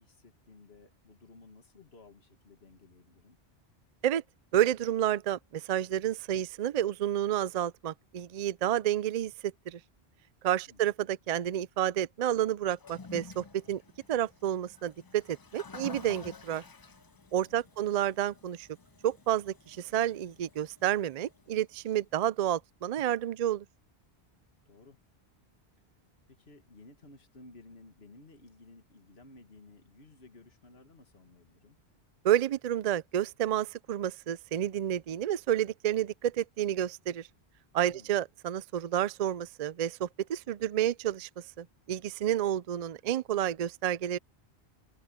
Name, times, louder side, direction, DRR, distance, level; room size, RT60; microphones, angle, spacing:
voice 1, 0.0-3.4 10.7-10.9 17.4-17.5 24.7-25.0 26.3-31.8 37.9-38.1, left 3 dB, 70° left, 2.2 m, -56 dB
voice 2, 4.5-9.8 10.4-13.8 14.1-16.6 17.3-18.7 19.0-23.7 32.2-37.3 37.7-41.3 41.6-44.2, right 11 dB, 55° right, 0.4 m, -30 dB
Toilet flush, 12.7-22.0, left 4 dB, 30° left, 0.4 m, -50 dB
omnidirectional pair, 1.1 m